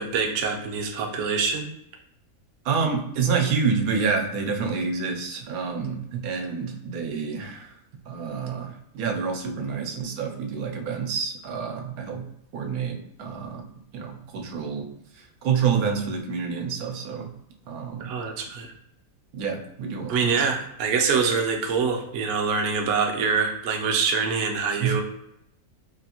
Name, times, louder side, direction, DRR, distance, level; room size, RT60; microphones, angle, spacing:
voice 1, 0.0-1.7 18.0-18.7 20.1-25.0, right 5 dB, 65° right, 1 dB, 0.9 m, -25 dB
voice 2, 2.6-7.7 8.1-12.2 12.5-13.6 13.9-14.9 15.4-17.3 17.7-18.1 19.3-20.3 24.8-25.0, right 5 dB, 90° right, 2 dB, 1.1 m, -28 dB
3.4 x 2.5 x 2.8 m, 0.80 s
omnidirectional pair, 1.5 m